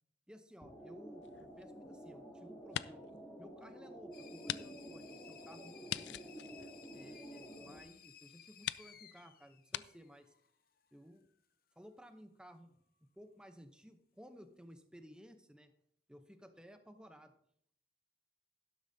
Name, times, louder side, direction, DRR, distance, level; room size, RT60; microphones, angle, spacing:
voice 1, 0.3-3.1 3.4-6.3 6.9-10.3 10.9-11.3 11.8-15.7 16.1-17.3, equal, 5° right, 7 dB, 0.7 m, -57 dB
sound 1, 0.6-7.8, right 1 dB, 15° left, 2.8 m, -51 dB
sound 2, 1.2-2.2 2.6-3.2 3.6-3.7 4.4-4.6 4.9-5.0 5.9-7.4 8.1-8.2 8.6-8.9 9.7-9.9, left 11 dB, 75° left, 0.3 m, -42 dB
sound 3, 4.1-10.5, left 9 dB, 55° left, 0.8 m, -59 dB
12.0 x 11.5 x 2.8 m, 0.70 s
head